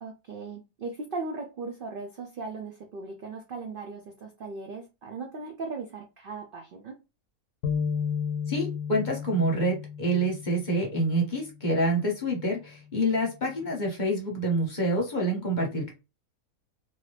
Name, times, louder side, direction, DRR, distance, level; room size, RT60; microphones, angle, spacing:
voice 1, 0.0-7.0, right 3 dB, 80° right, 0.4 m, -38 dB
sound 1, 7.6-11.2, left 6 dB, 90° left, 1.1 m, -32 dB
voice 2, 8.5-15.9, right 1 dB, 35° left, 0.9 m, -27 dB
2.7 x 2.6 x 3.2 m
omnidirectional pair, 1.6 m